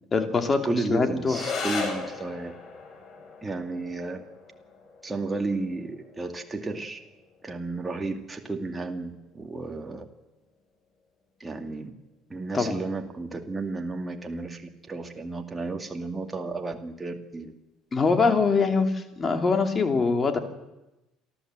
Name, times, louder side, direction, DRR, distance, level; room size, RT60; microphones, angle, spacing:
voice 1, 0.1-1.4 12.5-12.8 17.9-20.4, left 4 dB, 30° left, 6 dB, 2.8 m, -23 dB
voice 2, 0.6-2.5 3.4-4.2 5.0-7.0 7.4-10.1 11.4-11.9 12.3-14.6 14.9-17.5, right 3 dB, 15° right, 4 dB, 2.3 m, -33 dB
sound 1, 1.2-10.2, left 4 dB, 45° left, 5.2 m, -39 dB
28.5 x 11.5 x 7.7 m, 0.98 s
supercardioid pair, 95°, 0 cm